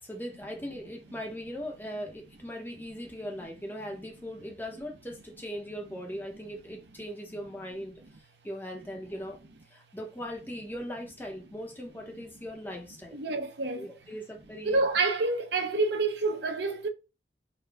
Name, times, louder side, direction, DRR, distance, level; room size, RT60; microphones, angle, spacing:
voice 1, 0.0-9.4 9.7-13.2 13.8-14.8, equal, 10° left, 0.9 m, -39 dB
voice 2, 13.1-13.9 14.6-16.9, right 3 dB, 65° right, 0.7 m, -28 dB
4.0 x 2.3 x 3.4 m
head